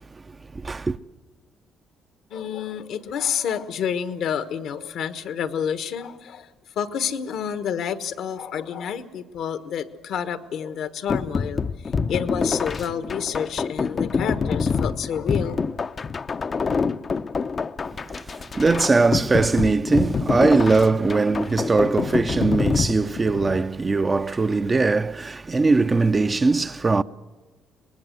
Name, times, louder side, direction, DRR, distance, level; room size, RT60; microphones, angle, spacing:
voice 1, 0.5-1.0 18.1-27.0, right 3 dB, 30° right, 0.8 m, -20 dB
voice 2, 2.3-6.5 6.8-11.6 12.1-15.6, left 8 dB, 70° left, 1.3 m, -29 dB
sound 1, 11.1-23.7, left 5 dB, 45° left, 0.7 m, -26 dB
24.0 x 19.5 x 7.9 m
supercardioid pair, 60°, 0 cm